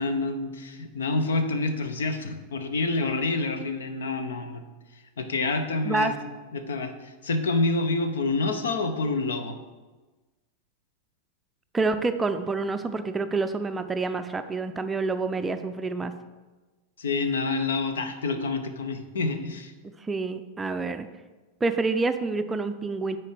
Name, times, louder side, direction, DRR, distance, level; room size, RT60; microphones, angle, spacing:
voice 1, 0.0-4.6 5.2-6.1 6.5-9.6 17.0-19.7, left 3 dB, 65° left, 9 dB, 0.8 m, -27 dB
voice 2, 5.8-6.1 11.7-16.1 20.0-21.1 21.6-23.2, right 3 dB, 15° right, 8 dB, 0.4 m, -27 dB
9.5 x 4.5 x 4.8 m, 1.2 s
figure-of-eight pair, 90°, 0 cm